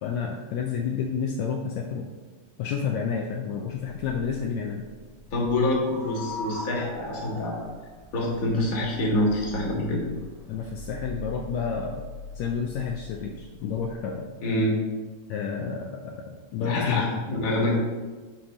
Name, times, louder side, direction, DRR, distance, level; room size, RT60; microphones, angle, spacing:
voice 1, 0.0-2.1 2.6-4.8 10.5-12.0 12.4-14.3 15.3-17.2, left 6 dB, 75° left, 1 dB, 1.8 m, -30 dB
sound 1, 3.7-13.9, left 2 dB, 15° right, 1.0 m, -41 dB
voice 2, 5.3-7.6 8.1-10.0 14.4-14.8 16.6-17.7, left 1 dB, 35° left, -3 dB, 1.7 m, -26 dB
7.2 x 4.5 x 6.4 m, 1.3 s
omnidirectional pair, 3.4 m